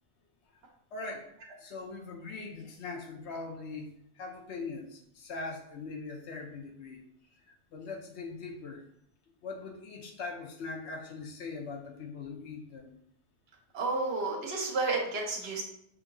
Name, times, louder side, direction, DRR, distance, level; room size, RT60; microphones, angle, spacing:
voice 1, 0.9-1.3 1.6-7.0 7.7-8.8 9.4-13.0, left 3 dB, 75° left, 3 dB, 1.0 m, -41 dB
voice 2, 13.7-15.6, right 3 dB, 65° right, 0 dB, 1.1 m, -31 dB
5.4 x 2.7 x 2.6 m, 0.72 s
omnidirectional pair, 1.1 m